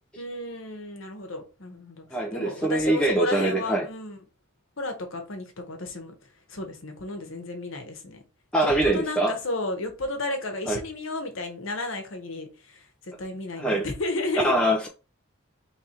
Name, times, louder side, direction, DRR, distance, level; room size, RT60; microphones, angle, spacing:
voice 1, 0.2-4.2 4.8-6.1 6.5-8.2 8.6-14.5, left 2 dB, 60° left, 1.1 m, -33 dB
voice 2, 2.1-3.8 8.5-9.3 10.7-10.8 13.6-13.8 14.4-14.9, right 1 dB, 5° left, 0.5 m, -23 dB
3.4 x 3.3 x 4.2 m
head